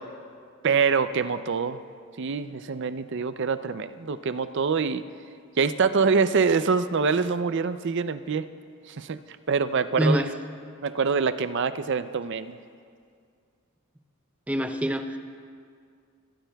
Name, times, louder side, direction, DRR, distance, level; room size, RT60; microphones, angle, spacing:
voice 1, 0.6-1.8 2.2-5.0 5.6-8.5 8.9-9.2 9.5-10.2 10.8-12.6, right 5 dB, 55° right, 12 dB, 0.5 m, -25 dB
voice 2, 10.0-10.3 14.5-15.2, equal, 5° right, 7 dB, 0.6 m, -25 dB
25.0 x 18.5 x 2.3 m, 2.2 s
head